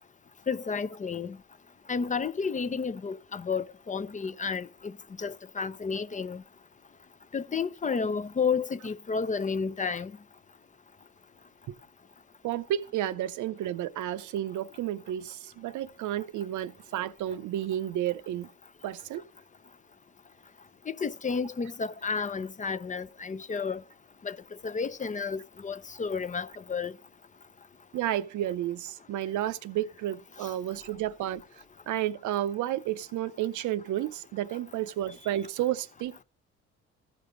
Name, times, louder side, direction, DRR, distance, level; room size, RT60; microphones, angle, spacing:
voice 1, 0.5-1.4 1.9-4.7 5.2-6.4 7.3-10.1 21.0-23.8 24.2-24.4 24.6-26.9, left 5 dB, 25° left, 0.4 m, -31 dB
voice 2, 12.4-18.5 18.8-19.2 27.9-31.4 31.9-36.2, right 12 dB, 75° right, 0.6 m, -31 dB
14.0 x 5.2 x 3.7 m
cardioid pair, 90°, 30 cm